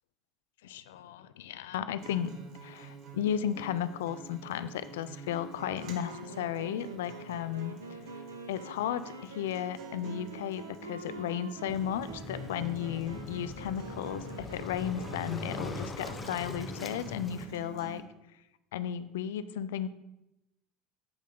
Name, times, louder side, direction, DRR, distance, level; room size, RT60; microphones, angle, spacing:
voice 1, 0.7-2.3 2.6-7.8 8.5-18.0 18.7-19.9, left 10 dB, 75° left, 14 dB, 0.4 m, -34 dB
Acoustic guitar, 2.0-18.0, right 4 dB, 60° right, 1.1 m, -48 dB
Wind instrument woodwind instrument, 5.5-17.2, right 3 dB, 90° right, 0.6 m, -47 dB
Waves surf, 11.7-17.5, left 3 dB, 25° left, 0.9 m, -41 dB
8.7 x 5.1 x 3.8 m, 0.90 s
hypercardioid pair, 70°, 0 cm